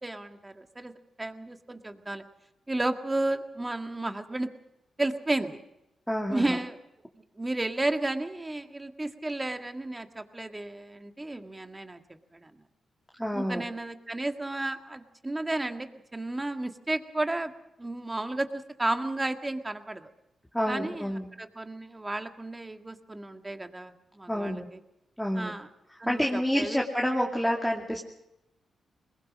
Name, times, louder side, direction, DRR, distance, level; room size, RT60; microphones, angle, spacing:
voice 1, 0.0-0.9 1.2-2.2 2.7-4.5 5.0-5.6 6.3-6.8 7.4-12.0 12.3-12.5 13.3-17.5 17.8-20.1 20.7-21.1 21.4-24.8 25.4-25.7 26.0-26.8, right 2 dB, 20° right, 7 dB, 1.8 m, -32 dB
voice 2, 6.1-6.6 13.2-13.6 20.5-21.3 24.3-24.7 25.2-25.5 26.1-28.0, equal, 5° left, 0 dB, 2.4 m, -28 dB
21.5 x 20.5 x 6.4 m, 0.86 s
cardioid pair, 65°, 0 cm